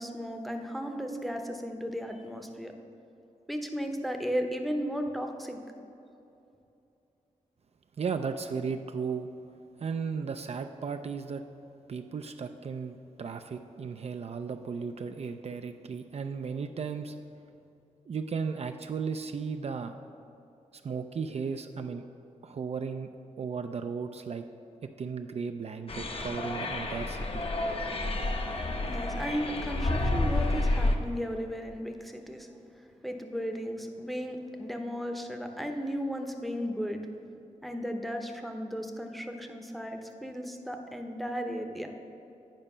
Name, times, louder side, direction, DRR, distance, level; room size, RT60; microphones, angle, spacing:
voice 1, 0.0-2.7 3.5-5.6 28.9-32.5 33.0-37.0 37.6-41.9, equal, ahead, 4 dB, 0.7 m, -35 dB
voice 2, 8.0-9.3 9.8-11.4 11.9-17.1 18.1-19.9 20.7-22.0 22.4-23.1 23.4-24.4 25.0-27.4, right 5 dB, 55° right, 7 dB, 0.4 m, -35 dB
sound 1, 25.9-31.0, left 2 dB, 45° left, 0.8 m, -30 dB
9.1 x 5.0 x 5.4 m, 2.7 s
wide cardioid pair, 85°, 13 cm